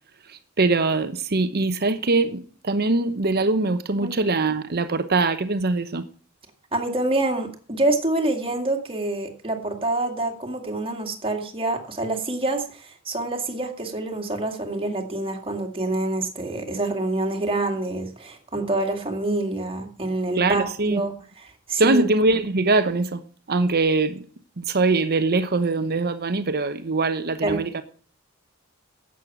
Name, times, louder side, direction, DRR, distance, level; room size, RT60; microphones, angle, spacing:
voice 1, 0.3-6.1 20.3-21.0 21.8-23.2 23.5-24.2 24.6-27.8, right 3 dB, 50° right, 0.9 m, -22 dB
voice 2, 6.7-22.0 27.4-27.6, right 2 dB, 25° right, 2.2 m, -26 dB
11.0 x 8.5 x 7.3 m
head